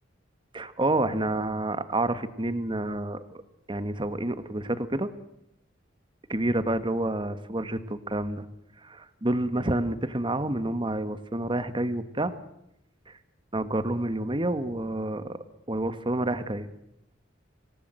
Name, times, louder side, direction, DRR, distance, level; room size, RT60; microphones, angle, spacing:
voice 1, 0.5-3.2 3.7-5.1 6.3-8.4 8.8-12.3 13.1-13.2 13.5-15.4 15.7-16.7, right 1 dB, 25° right, 12 dB, 1.5 m, -28 dB
26.0 x 19.0 x 7.7 m, 0.80 s
head